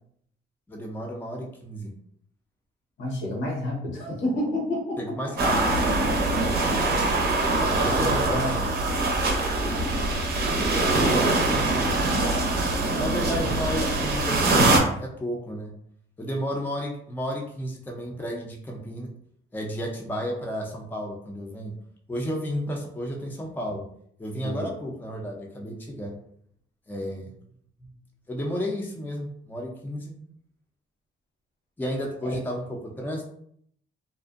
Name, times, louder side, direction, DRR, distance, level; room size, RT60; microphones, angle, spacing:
voice 1, 0.7-1.9 5.0-6.0 7.6-8.8 11.0-11.8 13.0-15.7 16.2-19.1 19.5-21.7 22.1-23.8 24.2-26.1 26.9-27.3 27.8-27.9 28.3-30.1 31.8-33.3, equal, 10° left, 0 dB, 0.5 m, -32 dB
voice 2, 3.0-5.2 6.1-6.4 8.0-8.5 11.4-11.5 13.4-13.6 24.4-24.7 32.2-32.4, left 1 dB, 75° left, -1 dB, 0.9 m, -30 dB
sound 1, 5.4-14.8, right 2 dB, 50° right, 0.6 m, -23 dB
2.5 x 2.1 x 2.4 m, 0.66 s
cardioid pair, 90°, 20 cm